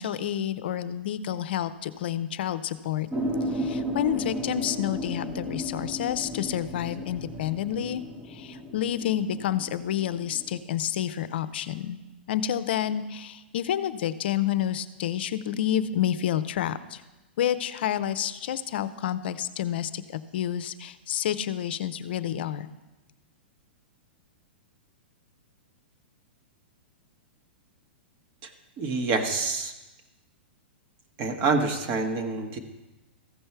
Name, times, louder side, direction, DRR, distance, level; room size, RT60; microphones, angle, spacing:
voice 1, 0.0-3.1 3.5-12.0 12.3-17.0 17.4-22.7, left 10 dB, 65° left, 14 dB, 0.6 m, -29 dB
sound 1, 3.1-10.6, equal, 15° right, 0.9 m, -34 dB
voice 2, 28.8-29.7 31.2-32.6, right 4 dB, 40° right, 6 dB, 1.2 m, -27 dB
14.5 x 5.5 x 4.5 m, 1.1 s
hypercardioid pair, 120°, 6 cm